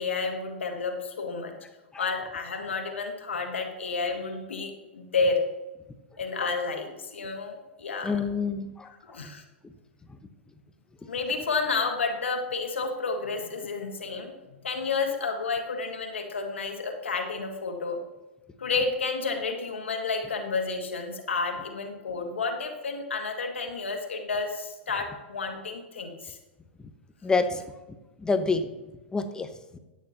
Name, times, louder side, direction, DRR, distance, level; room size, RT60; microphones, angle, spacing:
voice 1, 0.0-1.6 2.0-5.4 6.2-8.4 9.0-9.4 11.1-14.3 14.6-18.0 18.6-26.4, left 4 dB, 85° left, 3 dB, 1.7 m, -30 dB
voice 2, 8.0-8.9 27.2-27.6 28.2-28.7 29.1-29.5, left 4 dB, 10° left, 9 dB, 0.9 m, -26 dB
13.0 x 9.2 x 2.9 m, 1.1 s
hypercardioid pair, 115°, 6 cm